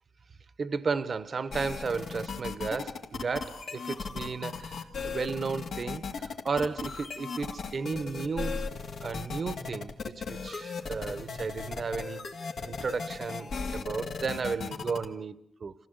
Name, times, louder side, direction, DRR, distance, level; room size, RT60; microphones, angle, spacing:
voice 1, 0.6-8.7 9.0-12.3 12.7-15.7, right 4 dB, 50° right, 1.0 m, -34 dB
sound 1, 1.5-15.0, left 5 dB, 75° left, 2.2 m, -37 dB
28.0 x 15.5 x 8.1 m
cardioid pair, 95°, 0 cm